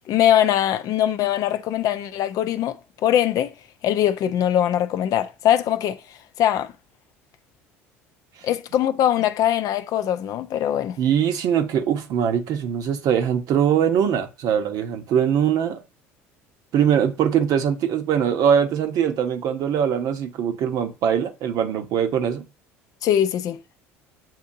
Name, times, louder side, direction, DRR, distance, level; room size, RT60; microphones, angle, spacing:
voice 1, 0.1-2.8 3.0-3.5 3.8-6.0 6.4-6.7 8.4-11.0 23.0-23.6, left 11 dB, 55° left, 0.5 m, -21 dB
voice 2, 11.0-15.8 16.7-22.5, right 8 dB, 60° right, 0.8 m, -22 dB
7.4 x 2.7 x 2.6 m
hypercardioid pair, 75°, 7 cm